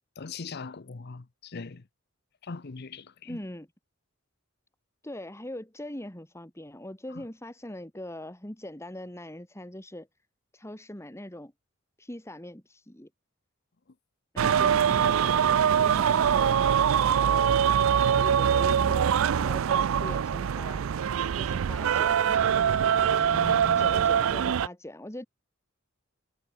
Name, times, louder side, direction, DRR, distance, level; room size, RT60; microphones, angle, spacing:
voice 1, 0.2-1.9 2.4-3.4 7.1-7.2 23.1-23.9, left 4 dB, 50° left, 0.8 m, -40 dB
voice 2, 3.3-3.7 5.0-10.1 10.5-11.5 12.0-13.1 14.3-15.2 15.8-16.7 17.2-20.8 21.3-22.5 23.8-25.3, left 1 dB, 15° left, 2.4 m, -41 dB
sound 1, 14.4-24.7, right 8 dB, 75° right, 0.4 m, -23 dB
head